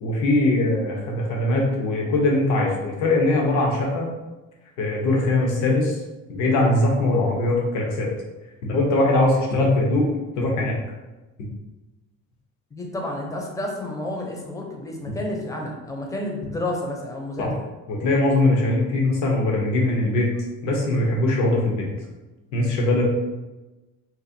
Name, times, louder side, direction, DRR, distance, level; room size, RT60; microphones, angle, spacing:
voice 1, 0.0-4.1 4.8-6.0 6.3-8.1 8.6-10.1 10.4-10.7 17.4-17.5 17.9-20.3 20.6-21.9 22.5-23.0, left 2 dB, 90° left, -1 dB, 0.8 m, -21 dB
voice 2, 12.7-17.7, left 1 dB, 10° left, 0 dB, 0.5 m, -30 dB
4.0 x 2.4 x 2.6 m, 1.1 s
cardioid pair, 135°, 29 cm